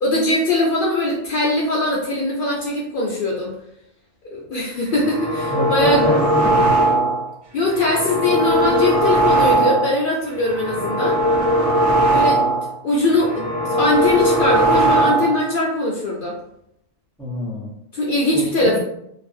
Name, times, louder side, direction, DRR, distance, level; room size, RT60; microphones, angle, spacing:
voice 1, 0.0-3.5 4.2-6.1 7.5-11.2 12.1-12.4 12.8-16.3 17.9-18.8, left 1 dB, 60° left, -3 dB, 0.6 m, -21 dB
sound 1, 4.9-7.3 7.6-10.0 10.4-12.7 13.0-15.4, right 1 dB, 80° right, 1.0 m, -19 dB
voice 2, 5.5-6.7 17.2-17.7 18.3-18.8, left 1 dB, 5° left, -4 dB, 0.5 m, -26 dB
2.6 x 2.4 x 2.5 m, 0.76 s
omnidirectional pair, 1.2 m